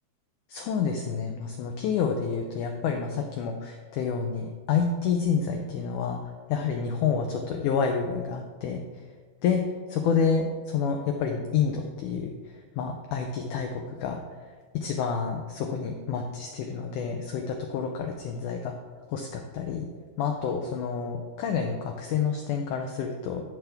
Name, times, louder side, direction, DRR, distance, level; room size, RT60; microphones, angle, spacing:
voice 1, 0.5-6.2 6.5-8.8 9.4-14.2 14.7-18.7 19.1-19.9 20.2-23.4, left 6 dB, 90° left, 3 dB, 1.7 m, -28 dB
13.5 x 6.0 x 3.5 m, 1.4 s
omnidirectional pair, 4.4 m